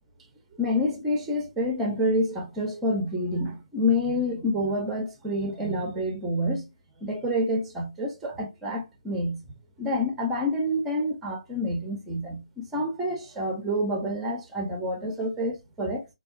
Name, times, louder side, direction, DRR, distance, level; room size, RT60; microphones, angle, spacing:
voice 1, 0.6-6.7 7.0-9.4 9.8-16.0, left 1 dB, 5° right, 0.5 m, -28 dB
3.4 x 2.2 x 2.4 m
figure-of-eight pair, 150°, 4 cm